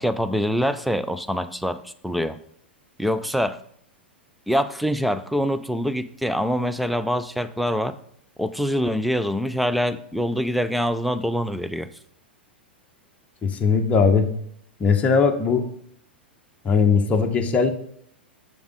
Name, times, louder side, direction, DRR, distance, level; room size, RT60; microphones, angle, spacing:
voice 1, 0.0-2.4 3.0-3.6 4.5-7.9 8.4-11.9, equal, ahead, 11 dB, 0.5 m, -24 dB
voice 2, 13.4-14.3 14.8-15.6 16.6-17.7, left 5 dB, 25° left, 3 dB, 0.9 m, -19 dB
7.1 x 6.1 x 3.7 m, 0.67 s
figure-of-eight pair, 95°, 6 cm